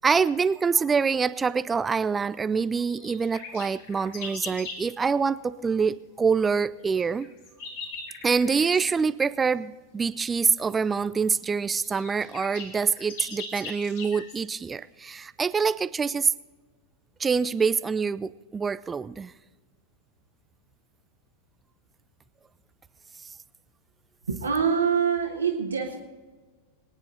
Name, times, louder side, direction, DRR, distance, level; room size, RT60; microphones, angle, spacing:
voice 1, 0.0-7.3 8.2-16.3 17.2-19.3, right 5 dB, 15° right, 16 dB, 0.4 m, -25 dB
sound 1, 2.9-4.9 7.0-8.9 10.8-10.9 11.4-11.5 11.7-14.4, left 3 dB, 55° left, 3.5 m, -40 dB
voice 2, 24.3-26.0, right 6 dB, 75° right, 1 dB, 1.6 m, -25 dB
23.5 x 10.0 x 4.1 m, 1.3 s
figure-of-eight pair, 90°, 0 cm